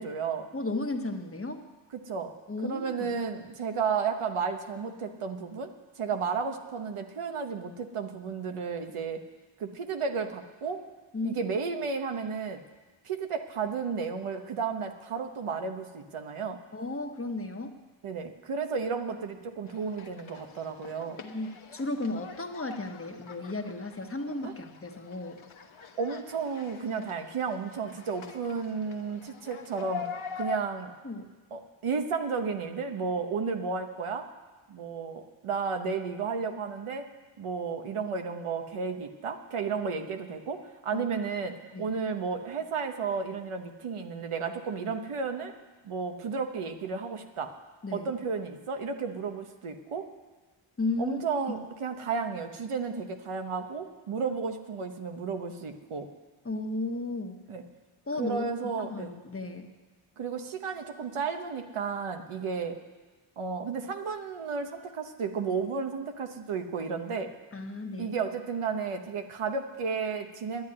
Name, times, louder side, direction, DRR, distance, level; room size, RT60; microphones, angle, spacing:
voice 1, 0.0-0.5 2.0-2.3 2.6-5.7 6.0-9.2 9.6-10.8 11.2-12.6 13.0-16.6 18.0-21.2 24.4-24.5 26.0-30.1 30.3-30.9 31.5-34.2 34.7-37.1 37.4-45.5 45.8-47.5 47.9-50.1 51.0-56.1 57.5-57.6 58.2-59.1 60.2-62.8 63.4-67.3 68.0-70.6, right 5 dB, 90° right, 6 dB, 1.2 m, -33 dB
voice 2, 0.5-1.6 2.5-3.2 11.1-11.4 16.7-17.8 21.2-25.4 31.0-31.2 40.9-41.1 41.7-41.9 47.8-48.1 50.8-51.2 51.5-51.6 56.4-57.4 58.1-59.7 67.5-68.2, left 2 dB, 25° left, 5 dB, 1.1 m, -34 dB
sound 1, 19.7-30.6, left 6 dB, 70° left, 1.2 m, -44 dB
10.5 x 9.4 x 9.7 m, 1.3 s
wide cardioid pair, 100°, 49 cm